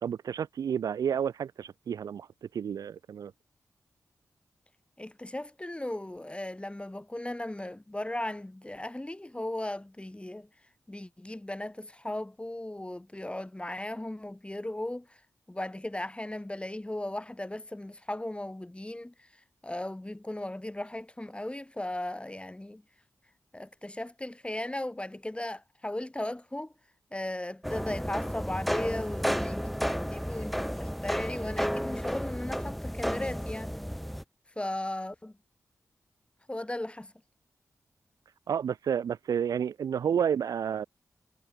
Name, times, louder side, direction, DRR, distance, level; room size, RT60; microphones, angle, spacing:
voice 1, 0.0-2.3 2.5-3.3 38.5-40.9, right 8 dB, 80° right, 0.4 m, -30 dB
voice 2, 5.0-10.5 10.9-15.2 15.5-19.3 19.6-22.8 23.5-26.7 27.1-33.7 34.6-35.4 36.5-37.1, left 1 dB, 20° left, 5.2 m, -37 dB
sound 1, 27.6-34.2, equal, ahead, 1.3 m, -32 dB
cardioid pair, 45°, 6 cm